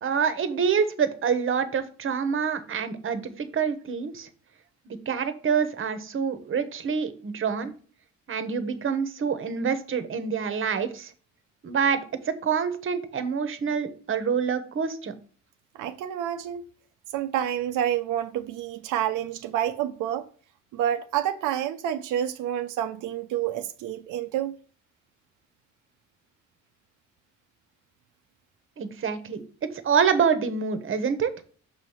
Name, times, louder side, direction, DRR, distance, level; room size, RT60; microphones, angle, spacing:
voice 1, 0.0-4.3 4.9-7.7 8.3-11.1 11.6-15.1 28.8-29.4 29.8-31.4, right 6 dB, 45° right, 1.0 m, -26 dB
voice 2, 15.8-16.6 17.1-20.3 20.7-24.5, right 11 dB, 90° right, 0.6 m, -28 dB
6.3 x 3.1 x 5.5 m
cardioid pair, 90°, 30 cm